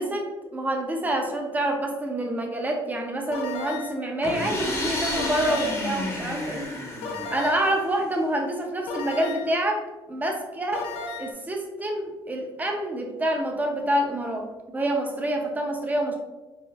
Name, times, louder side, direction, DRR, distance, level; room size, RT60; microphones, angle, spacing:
voice 1, 0.0-6.6 7.3-9.8 10.1-10.9 11.2-14.5 14.7-16.2, right 1 dB, 15° right, 2 dB, 0.6 m, -27 dB
sound 1, 3.3-4.1 5.2-5.9 7.0-7.8 8.9-9.6 10.7-11.3, left 3 dB, 80° left, 0.5 m, -35 dB
sound 2, 4.2-8.0, left 1 dB, 30° left, 0.8 m, -31 dB
4.9 x 2.4 x 2.4 m, 1.1 s
cardioid pair, 115°, 10 cm